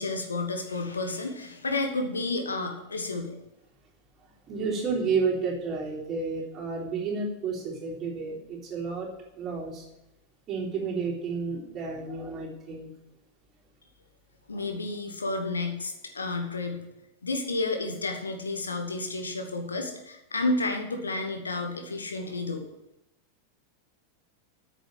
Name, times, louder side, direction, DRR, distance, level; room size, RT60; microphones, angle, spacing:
voice 1, 0.0-3.4 14.5-16.8 17.2-22.7, left 2 dB, 75° left, 5 dB, 1.4 m, -31 dB
voice 2, 4.5-9.8 10.5-12.9 14.6-14.7, right 4 dB, 30° right, -4 dB, 3.7 m, -31 dB
9.0 x 6.9 x 7.6 m, 0.90 s
figure-of-eight pair, 90°, 0 cm